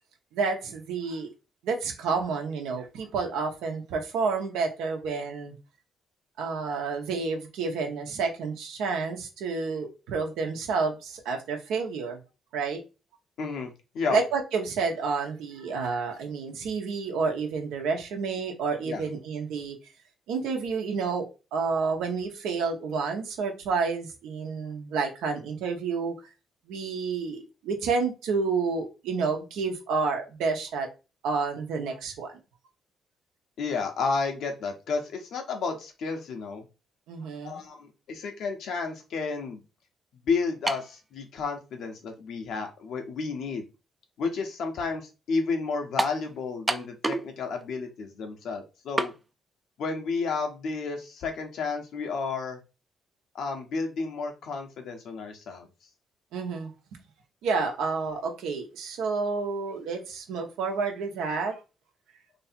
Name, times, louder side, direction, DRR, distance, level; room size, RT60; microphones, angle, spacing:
voice 1, 0.3-1.3 1.6-5.5 6.4-12.2 12.5-12.8 14.1-19.8 20.3-21.2 21.5-26.1 26.7-30.9 31.2-32.4 37.1-37.6 56.3-56.7 57.4-61.6, right 4 dB, 90° right, 3 dB, 1.0 m, -29 dB
voice 2, 13.4-14.2 18.8-19.1 33.6-36.6 37.4-39.6 40.2-43.7 44.2-49.1 49.8-52.6 53.3-55.7, left 4 dB, 75° left, 3 dB, 1.1 m, -31 dB
sound 1, 40.7-41.0 41.8-41.9 46.0-46.2 46.7-47.3 47.6-47.7 49.0-49.2, right 2 dB, 20° right, 0.4 m, -28 dB
3.1 x 2.8 x 4.3 m, 0.30 s
cardioid pair, 90°, 0 cm